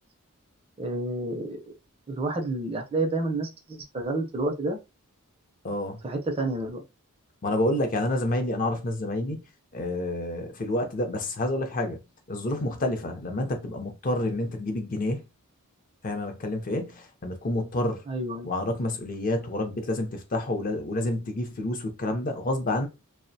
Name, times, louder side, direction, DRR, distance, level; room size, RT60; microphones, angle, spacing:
voice 1, 0.8-1.7 2.1-4.8 6.0-6.8 18.1-18.5, right 2 dB, 25° right, 0.4 m, -29 dB
voice 2, 5.6-6.0 7.4-9.4 9.7-12.0 12.3-15.2 16.0-18.0 18.4-22.9, left 1 dB, 40° left, 0.5 m, -28 dB
2.4 x 2.0 x 2.6 m
head